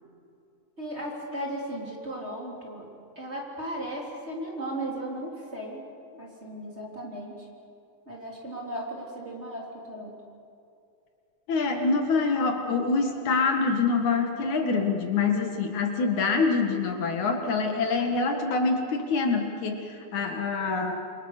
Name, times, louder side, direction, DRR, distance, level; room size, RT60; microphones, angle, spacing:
voice 1, 0.8-2.9 3.2-5.8 6.1-7.5 8.1-10.2, right 1 dB, 20° right, -2 dB, 3.6 m, -36 dB
voice 2, 11.5-21.0, left 4 dB, 65° left, 4 dB, 3.0 m, -25 dB
28.5 x 24.0 x 6.7 m, 2.5 s
omnidirectional pair, 3.7 m